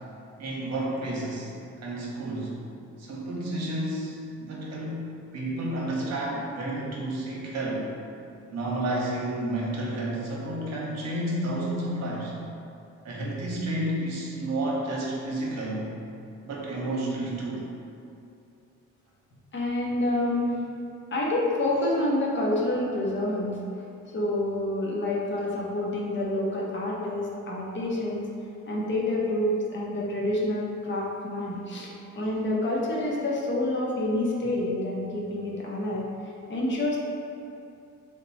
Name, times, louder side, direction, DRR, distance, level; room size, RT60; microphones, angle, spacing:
voice 1, 0.4-2.6 3.0-7.9 8.5-12.3 13.0-15.9 16.4-17.6, right 1 dB, 60° right, -4 dB, 0.9 m, -31 dB
voice 2, 19.5-20.6 21.1-23.6 24.1-28.3 28.7-36.1 36.5-37.0, left 1 dB, 40° left, -3 dB, 0.7 m, -28 dB
2.9 x 2.2 x 4.0 m, 2.7 s
cardioid pair, 90°, 30 cm